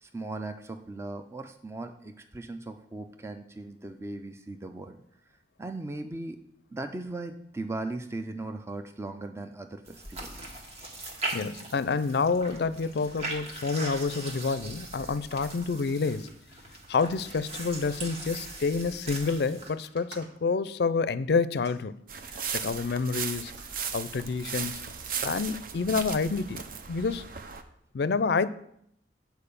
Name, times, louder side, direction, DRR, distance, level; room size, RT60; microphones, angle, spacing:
voice 1, 0.0-5.0 5.6-6.4 6.7-10.4, right 2 dB, 15° right, 7 dB, 0.4 m, -38 dB
sound 1, 9.9-19.7, right 2 dB, 40° right, 1.5 m, -40 dB
voice 2, 11.3-16.3 16.9-22.0 22.5-23.5 23.9-24.8 25.2-26.6 26.9-27.2 27.9-28.5, left 4 dB, 65° left, 16 dB, 0.4 m, -28 dB
sound 2, 19.8-22.6 23.2-23.8 24.6-25.2, right 2 dB, 75° right, 1.4 m, -54 dB
sound 3, 22.1-27.6, right 6 dB, 55° right, 0.7 m, -36 dB
8.8 x 4.6 x 6.8 m, 0.72 s
head